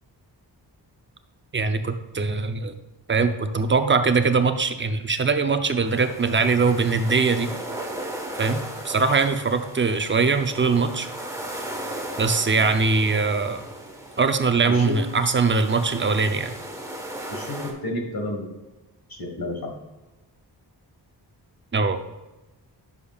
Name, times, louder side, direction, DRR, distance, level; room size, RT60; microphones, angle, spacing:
voice 1, 1.5-2.7 3.1-7.5 8.4-11.1 12.2-13.6 14.2-16.5 21.7-22.0, right 4 dB, 25° right, 8 dB, 0.6 m, -22 dB
sound 1, 5.9-17.7, right 1 dB, 5° right, 1.3 m, -36 dB
voice 2, 17.3-18.5 19.1-19.7, left 1 dB, 60° left, 2 dB, 1.7 m, -30 dB
10.5 x 6.8 x 2.4 m, 1.1 s
wide cardioid pair, 110°, 42 cm